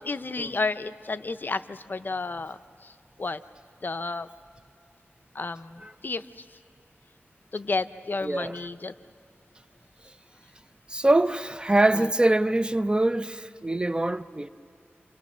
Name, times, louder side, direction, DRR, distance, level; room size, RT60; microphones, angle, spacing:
voice 1, 0.1-2.6 2.8-2.9 3.2-3.4 3.8-4.3 5.3-6.2 7.5-8.9, left 3 dB, 50° left, 0.6 m, -31 dB
voice 2, 8.2-8.7 10.9-14.5, right 2 dB, 20° right, 0.6 m, -24 dB
28.5 x 28.0 x 6.2 m
wide cardioid pair, 65°, 4 cm